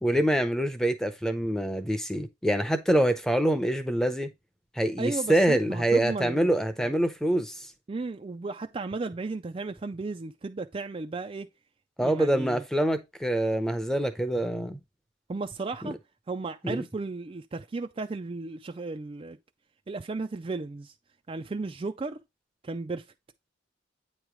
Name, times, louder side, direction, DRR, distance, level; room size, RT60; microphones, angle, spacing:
voice 1, 0.0-4.3 4.8-7.7 12.0-14.8 15.8-15.9 16.6-16.8, right 1 dB, 5° left, 0.7 m, -25 dB
voice 2, 5.0-6.9 7.9-11.5 12.0-12.6 15.3-15.9 16.3-19.4 19.9-20.9 21.3-22.2 22.6-23.0, right 3 dB, 30° right, 0.3 m, -34 dB
8.9 x 3.1 x 4.9 m
head